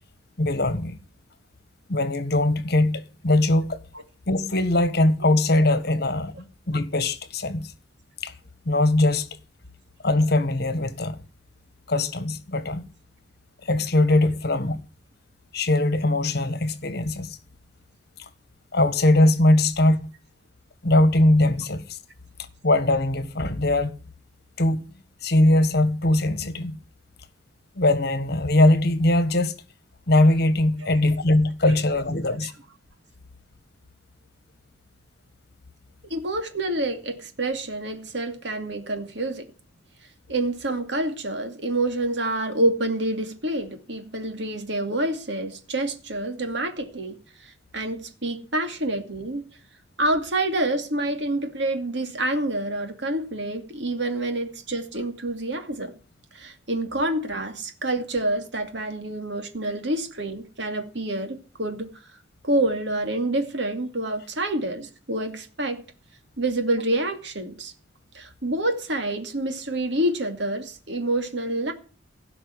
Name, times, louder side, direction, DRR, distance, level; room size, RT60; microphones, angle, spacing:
voice 1, 0.4-1.0 1.9-3.8 4.3-7.7 8.2-8.3 8.6-9.3 10.0-11.2 11.9-12.8 13.6-14.8 15.5-17.4 18.7-20.1 20.8-22.0 22.6-24.0 24.6-24.8 25.2-26.8 27.8-29.6 30.1-32.5, left 1 dB, 55° left, 1.5 m, -21 dB
voice 2, 36.1-39.5 40.3-47.1 47.4-49.5 50.0-55.9 56.3-61.9 62.4-65.8 66.4-67.7 68.1-71.7, right 1 dB, 65° right, 2.5 m, -27 dB
16.5 x 6.0 x 9.8 m
head